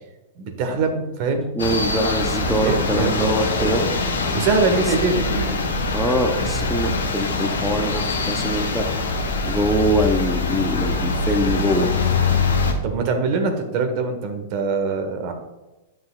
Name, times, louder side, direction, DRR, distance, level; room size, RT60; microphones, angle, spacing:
voice 1, 0.4-1.8 2.5-4.0 4.3-5.3 12.8-15.3, right 4 dB, 50° right, 5 dB, 1.2 m, -23 dB
sound 1, 1.6-12.7, left 3 dB, 80° left, 1.2 m, -23 dB
voice 2, 1.6-3.8 4.7-4.8 5.3-5.5 5.9-8.9 9.5-11.9, equal, ahead, 3 dB, 0.7 m, -23 dB
9.3 x 6.3 x 2.4 m, 1.0 s
hypercardioid pair, 100°, 0 cm